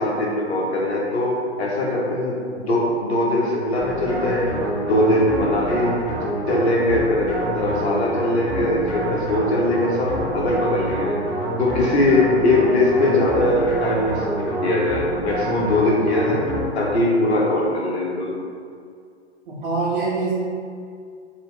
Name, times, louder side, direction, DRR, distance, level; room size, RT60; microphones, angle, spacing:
voice 1, 0.0-2.4 2.7-4.6 4.9-6.0 6.5-11.2 11.6-16.5 16.7-18.3, left 1 dB, 70° left, -3 dB, 0.7 m, -21 dB
sound 1, 3.8-17.0, right 1 dB, 10° left, 0.3 m, -27 dB
voice 2, 19.5-20.3, right 3 dB, 45° right, -6 dB, 0.5 m, -24 dB
2.3 x 2.0 x 3.5 m, 2.2 s
figure-of-eight pair, 125°, 34 cm